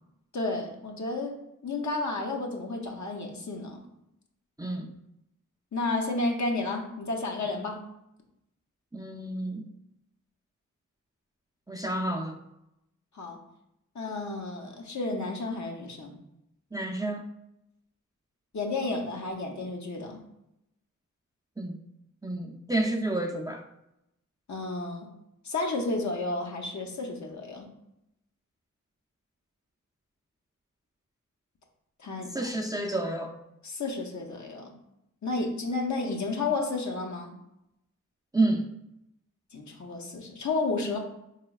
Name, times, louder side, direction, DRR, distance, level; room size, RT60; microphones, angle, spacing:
voice 1, 0.3-1.4 1.6-3.8 5.7-7.8 13.1-13.4 13.9-16.2 18.5-20.2 24.5-25.1 25.4-27.7 32.0-32.5 33.6-34.8 35.2-37.3 39.5-41.0, left 3 dB, 60° left, 1 dB, 0.7 m, -32 dB
voice 2, 4.6-4.9 7.4-7.6 8.9-9.6 11.7-12.4 16.7-17.2 21.6-21.8 22.2-23.6 32.3-33.3 38.3-38.7, right 2 dB, 10° right, 2 dB, 0.3 m, -29 dB
3.8 x 3.1 x 2.3 m, 0.84 s
cardioid pair, 45°, 33 cm